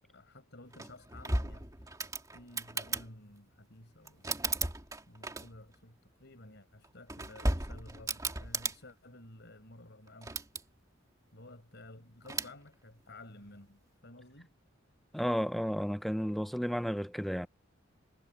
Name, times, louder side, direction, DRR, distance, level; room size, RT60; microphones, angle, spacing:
voice 1, 0.0-2.0 2.3-4.4 5.1-10.4 11.3-14.5, left 1 dB, 60° left, 5.4 m, -53 dB
sound 1, 0.7-3.1 4.0-5.7 6.8-8.8 10.1-10.6 12.2-12.5, right 2 dB, 15° right, 2.2 m, -35 dB
voice 2, 15.1-17.5, equal, ahead, 0.6 m, -32 dB
head